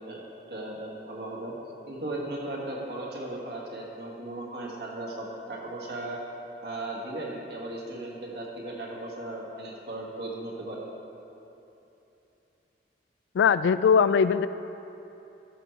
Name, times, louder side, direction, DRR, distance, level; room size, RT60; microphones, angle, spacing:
voice 1, 0.0-1.5 1.9-6.2 6.6-10.9, right 2 dB, 65° right, -3 dB, 1.8 m, -37 dB
voice 2, 13.3-14.5, left 6 dB, 80° left, 14 dB, 0.3 m, -20 dB
13.5 x 6.1 x 4.6 m, 3.0 s
head